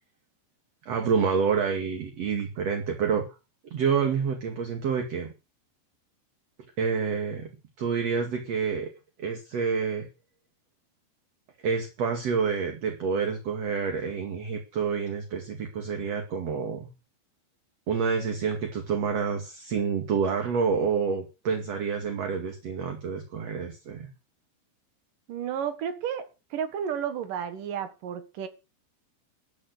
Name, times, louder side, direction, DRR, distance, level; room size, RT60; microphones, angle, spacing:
voice 1, 0.9-3.2 3.7-5.3 6.8-7.5 7.8-8.9 9.2-10.1 11.6-16.9 17.9-24.1, right 6 dB, 45° right, 2.8 m, -28 dB
voice 2, 25.3-28.5, right 8 dB, 60° right, 2.5 m, -32 dB
13.5 x 8.3 x 8.3 m
omnidirectional pair, 5.3 m